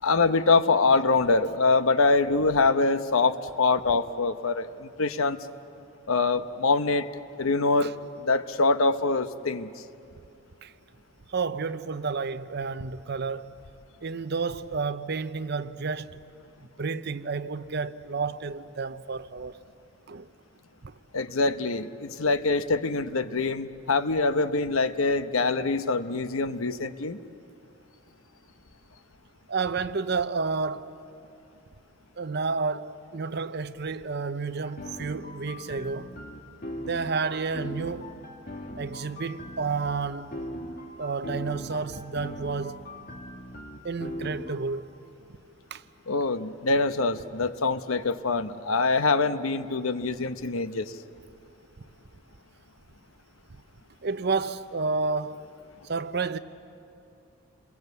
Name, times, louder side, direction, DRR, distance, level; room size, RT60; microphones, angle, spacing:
voice 1, 0.0-5.4 6.1-7.1 7.4-7.9 8.2-9.7 21.1-27.2 46.1-51.0, left 3 dB, 75° left, 0.9 m, -24 dB
voice 2, 11.3-13.6 14.0-16.2 16.8-19.6 20.1-20.3 20.8-21.0 29.5-30.9 32.2-36.1 36.8-38.1 38.8-40.4 41.0-42.9 43.8-44.9 45.7-45.8 54.0-55.5 55.9-56.4, right 4 dB, 50° right, 0.7 m, -30 dB
sound 1, 34.6-44.5, equal, 40° left, 1.9 m, -40 dB
29.0 x 21.5 x 8.2 m
head